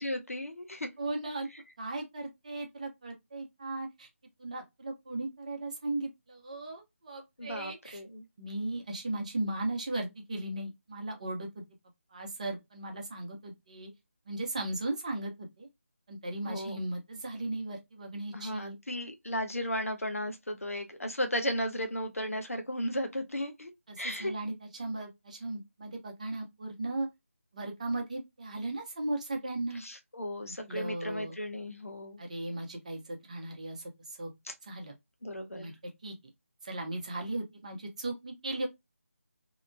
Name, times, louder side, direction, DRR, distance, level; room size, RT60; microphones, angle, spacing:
voice 1, 0.0-0.9 7.4-8.2 16.4-16.8 18.3-23.7 24.0-24.3 29.8-32.2 34.5-34.6 35.2-35.7, equal, 70° left, 0.8 m, -35 dB
voice 2, 1.0-1.5 1.8-4.1 4.4-8.0 8.4-11.6 12.1-13.9 14.3-15.7 16.1-18.8 23.9-27.1 27.5-29.8 30.7-31.4 32.2-34.3 34.6-34.9 35.5-35.7 36.0-36.1 36.6-38.7, right 2 dB, 30° right, 0.6 m, -37 dB
2.8 x 2.1 x 2.6 m
figure-of-eight pair, 160°, 8 cm